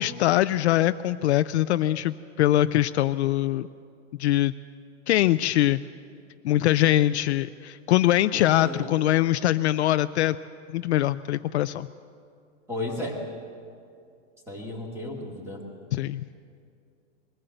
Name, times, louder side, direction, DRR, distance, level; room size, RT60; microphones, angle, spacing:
voice 1, 0.0-3.7 4.2-4.5 5.1-5.8 6.4-10.4 10.7-11.9 15.9-16.2, left 14 dB, 60° left, 12 dB, 0.5 m, -22 dB
voice 2, 8.3-8.9 12.7-13.2 14.5-15.6, left 1 dB, 5° right, 0 dB, 2.4 m, -34 dB
21.5 x 15.5 x 7.8 m, 2.4 s
supercardioid pair, 165°, 38 cm